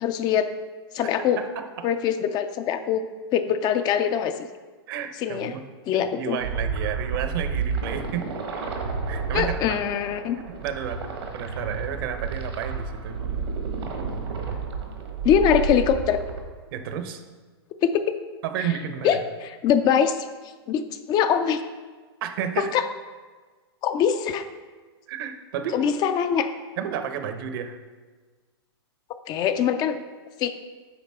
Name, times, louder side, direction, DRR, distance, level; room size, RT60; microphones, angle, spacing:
voice 1, 0.0-0.5 0.9-1.4 1.8-3.1 3.3-4.3 5.2-5.5 5.9-6.4 9.3-10.4 15.2-16.2 17.8-18.0 19.0-19.2 19.6-20.3 20.7-21.6 22.6-22.9 23.8-24.4 25.7-26.5 29.3-30.0 30.4-30.5, left 8 dB, 30° left, 10 dB, 0.4 m, -22 dB
voice 2, 1.2-1.9 4.9-5.6 5.9-8.3 9.1-9.8 10.6-13.3 16.7-17.2 18.4-19.2 22.2-22.7 25.1-25.9 26.8-27.8, right 8 dB, 60° right, 8 dB, 0.8 m, -32 dB
sound 1, 6.4-16.4, right 5 dB, 75° right, 1.4 m, -31 dB
8.5 x 5.4 x 3.6 m, 1.4 s
hypercardioid pair, 125°, 14 cm